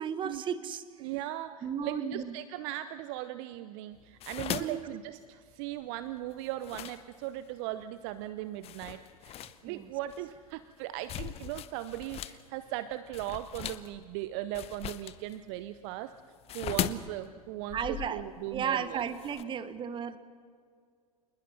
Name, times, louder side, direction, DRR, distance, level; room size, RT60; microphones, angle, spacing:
voice 1, 0.0-0.8 1.6-2.3 4.6-4.8 9.6-9.9 17.7-18.2 18.5-20.2, right 7 dB, 25° right, 13 dB, 1.3 m, -34 dB
voice 2, 1.0-16.1 16.5-19.0, right 14 dB, 45° right, 13 dB, 0.8 m, -38 dB
sound 1, 4.0-7.5 8.1-8.3 8.6-12.4 12.7-19.4, left 12 dB, 30° left, 1.0 m, -40 dB
27.5 x 20.5 x 5.8 m, 2.1 s
figure-of-eight pair, 90°, 19 cm